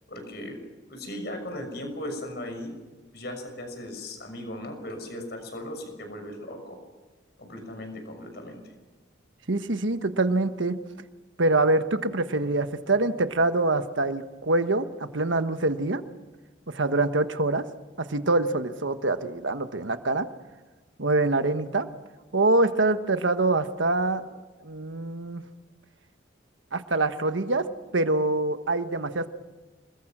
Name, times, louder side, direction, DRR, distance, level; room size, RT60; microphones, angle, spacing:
voice 1, 0.1-0.6 0.9-2.7 3.1-6.8 7.4-8.6, left 1 dB, 55° left, 5 dB, 6.5 m, -37 dB
voice 2, 9.5-10.8 11.4-16.0 16.7-17.7 18.0-20.3 21.0-21.9 22.3-24.2 24.6-25.4 26.7-27.7 27.9-29.3, right 2 dB, 80° right, 9 dB, 1.3 m, -25 dB
27.5 x 21.5 x 6.2 m, 1.2 s
head